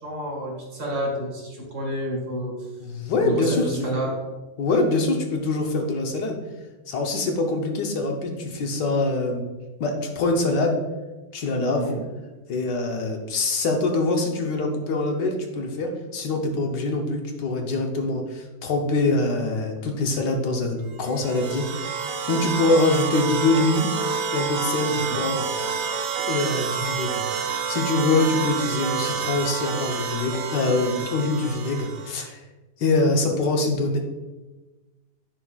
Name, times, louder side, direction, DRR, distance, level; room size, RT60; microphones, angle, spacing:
voice 1, 0.0-2.5 3.2-4.2 11.7-12.0 25.2-25.3, equal, 60° right, -2 dB, 2.4 m, -29 dB
voice 2, 2.8-3.9 4.6-6.4 6.9-9.5 9.8-10.8 11.3-11.8 12.5-23.9 24.3-25.4 26.2-27.2 27.7-32.4 32.8-34.0, left 2 dB, 90° left, 2 dB, 1.6 m, -24 dB
sound 1, 21.0-32.3, right 6 dB, 85° right, 1.2 m, -28 dB
10.0 x 4.2 x 2.4 m, 1.2 s
omnidirectional pair, 1.8 m